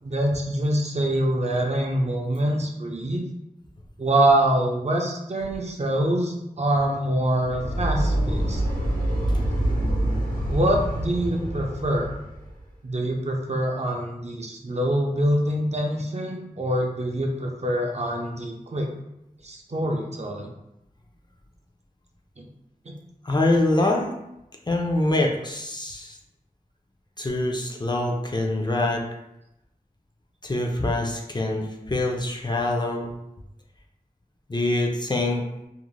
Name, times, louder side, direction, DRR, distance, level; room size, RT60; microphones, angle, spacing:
voice 1, 0.0-3.2 4.0-8.6 10.5-12.1 12.8-18.9 19.4-20.5 22.4-22.5, right 1 dB, 45° right, 0 dB, 0.5 m, -25 dB
sound 1, 7.3-12.5, right 1 dB, 80° left, 0.9 m, -26 dB
voice 2, 23.2-24.1 24.7-26.2 27.2-29.1 30.4-33.1 34.5-35.4, left 2 dB, 30° left, 0 dB, 0.4 m, -24 dB
2.5 x 2.0 x 3.0 m, 0.87 s
wide cardioid pair, 55°, 15 cm